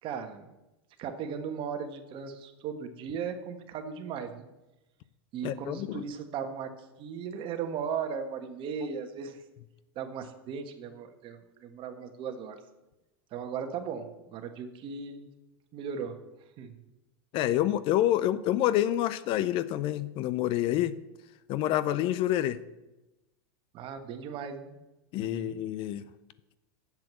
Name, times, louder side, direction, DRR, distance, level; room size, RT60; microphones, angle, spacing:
voice 1, 0.0-0.5 1.0-4.4 5.3-6.7 7.0-9.4 9.9-12.6 13.3-15.3 15.7-16.2 16.6-16.8 23.7-24.8 25.2-25.6, right 6 dB, 45° right, 7 dB, 1.4 m, -37 dB
voice 2, 5.4-6.0 17.3-21.0 21.5-22.6 25.1-26.0, left 13 dB, 45° left, 16 dB, 0.5 m, -27 dB
7.6 x 7.4 x 7.5 m, 1.0 s
hypercardioid pair, 110°, 12 cm